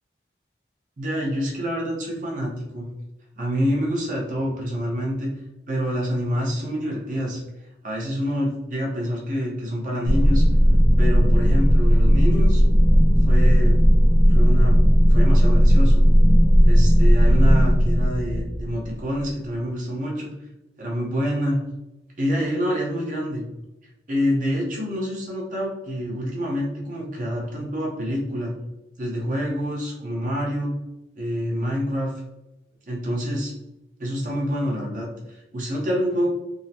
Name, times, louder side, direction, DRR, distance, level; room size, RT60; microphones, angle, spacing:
voice 1, 1.0-2.9 3.4-5.3 5.7-7.4 7.8-10.4 11.0-12.6 13.3-13.8 14.3-16.0 16.6-20.3 20.8-21.6 22.2-23.4 24.1-28.5 29.0-30.7 31.1-32.1 32.9-33.5 34.0-36.3, equal, 45° right, -3 dB, 0.7 m, -27 dB
sound 1, 10.0-19.3, equal, 20° left, 0.7 m, -16 dB
3.7 x 2.0 x 2.7 m, 1.0 s
head